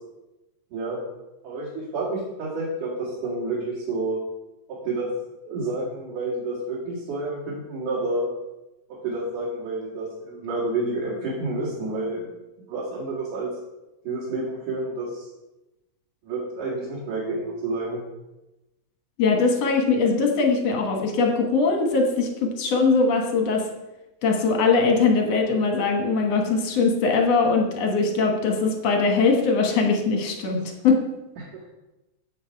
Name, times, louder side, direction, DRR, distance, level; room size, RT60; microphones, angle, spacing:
voice 1, 0.7-1.0 1.4-4.2 4.7-5.1 5.4-8.3 9.0-12.3 12.7-13.5 14.0-15.3 16.2-18.0 31.4-31.6, right 2 dB, 60° right, -7 dB, 3.5 m, -29 dB
voice 2, 19.2-23.7 24.2-30.6 30.8-31.0, left 4 dB, 60° left, 2 dB, 2.0 m, -21 dB
9.9 x 8.1 x 4.6 m, 0.99 s
omnidirectional pair, 4.2 m